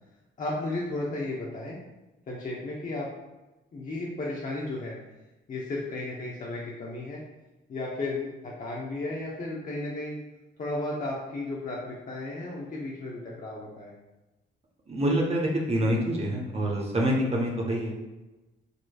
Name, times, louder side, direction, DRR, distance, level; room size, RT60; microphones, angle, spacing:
voice 1, 0.4-1.8 2.3-3.1 3.7-5.0 5.5-7.2 7.7-10.2 10.6-13.9, left 2 dB, 40° left, -4 dB, 0.9 m, -34 dB
voice 2, 14.9-17.9, equal, 30° right, -1 dB, 0.9 m, -26 dB
6.6 x 3.1 x 2.3 m, 1.1 s
cardioid pair, 90°, 20 cm